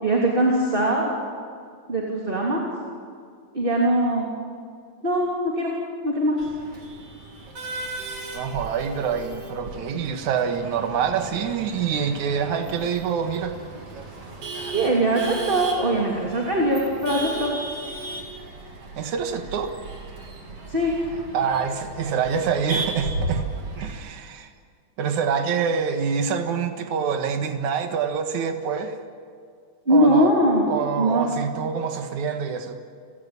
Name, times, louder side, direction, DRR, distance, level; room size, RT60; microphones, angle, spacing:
voice 1, 0.0-1.1 1.9-2.6 3.5-4.3 5.0-5.7 6.0-6.4 14.7-17.5 20.7-21.0 29.9-30.6 31.0-31.3, right 1 dB, 20° right, -2 dB, 3.0 m, -21 dB
Male speech man speaking / Laughter / Chatter, 6.4-23.9, right 2 dB, 50° right, 4.3 m, -35 dB
voice 2, 8.3-13.6 19.0-19.7 21.3-23.4 23.8-24.5 25.0-29.0 29.9-30.3 30.7-32.8, right 6 dB, 80° right, 6 dB, 3.0 m, -26 dB
30.0 x 17.0 x 9.8 m, 2.1 s
omnidirectional pair, 3.4 m